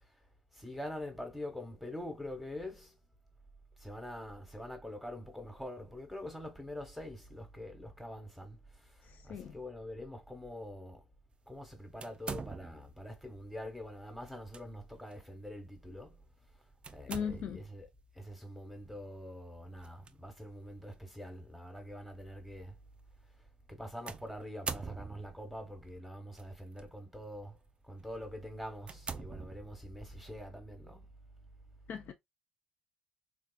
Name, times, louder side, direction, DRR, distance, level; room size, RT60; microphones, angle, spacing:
voice 1, 0.5-3.0 3.8-11.0 11.5-16.2 16.9-17.9 18.1-22.8 23.7-27.6 27.8-31.1, left 1 dB, ahead, 1.1 m, -45 dB
voice 2, 9.0-9.6 17.1-17.6 31.9-32.1, left 7 dB, 50° left, 0.3 m, -38 dB
sound 1, 12.0-13.0 14.3-14.6 15.1-15.2 16.8-17.7 19.8-20.1 20.9-21.0 24.1-25.5 26.4-26.8 27.4-27.6 28.1-28.2 28.8-30.0, right 5 dB, 30° right, 0.3 m, -43 dB
3.5 x 2.3 x 2.3 m
figure-of-eight pair, 50°, 4 cm